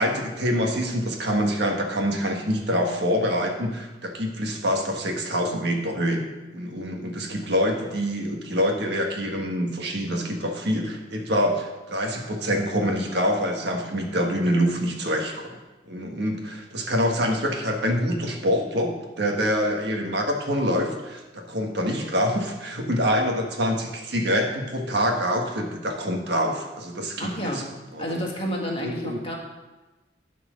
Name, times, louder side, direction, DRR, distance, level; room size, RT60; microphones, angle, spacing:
voice 1, 0.0-6.2 6.5-15.6 15.9-27.6 27.9-28.2 28.8-29.2, equal, 65° right, 2 dB, 1.5 m, -25 dB
voice 2, 27.2-27.6 28.0-29.3, equal, 30° left, -2 dB, 2.0 m, -30 dB
12.0 x 4.6 x 6.3 m, 1.1 s
head